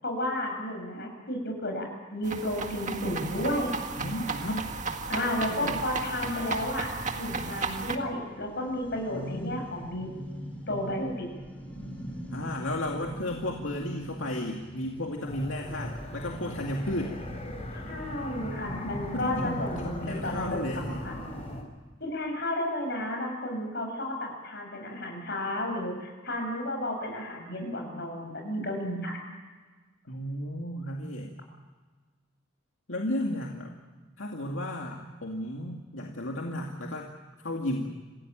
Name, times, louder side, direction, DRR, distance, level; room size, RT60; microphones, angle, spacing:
voice 1, 0.0-3.7 5.1-6.9 7.2-10.1 10.7-11.3 17.9-20.6 21.0-21.3 22.0-29.2, left 1 dB, 55° left, 3 dB, 7.7 m, -32 dB
sound 1, 2.2-8.0, right 4 dB, 40° right, 1.8 m, -34 dB
voice 2, 4.0-4.7 5.5-5.8 9.1-9.7 12.3-17.2 19.1-21.0 30.0-31.4 32.9-33.7 34.2-37.1 37.4-37.9, left 1 dB, 80° left, 0 dB, 2.4 m, -34 dB
sound 2, 7.8-21.5, equal, 10° left, 5.5 m, -43 dB
sound 3, 15.3-21.6, left 1 dB, 35° left, 4.1 m, -40 dB
27.0 x 16.0 x 9.1 m, 1.3 s
head